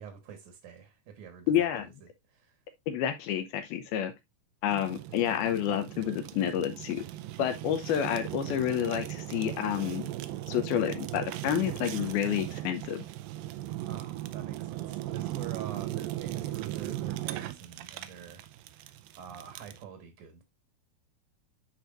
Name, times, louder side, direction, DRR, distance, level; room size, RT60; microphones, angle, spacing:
voice 1, 0.0-1.7 2.0-2.6 13.9-20.4, right 8 dB, 60° right, 2.0 m, -46 dB
voice 2, 1.5-1.9 2.9-4.1 4.6-7.1 7.4-10.1 10.5-13.0, left 10 dB, 80° left, 2.5 m, -29 dB
Fire, 4.7-19.8, right 15 dB, 90° right, 2.0 m, -38 dB
12.5 x 4.6 x 2.5 m
omnidirectional pair, 4.8 m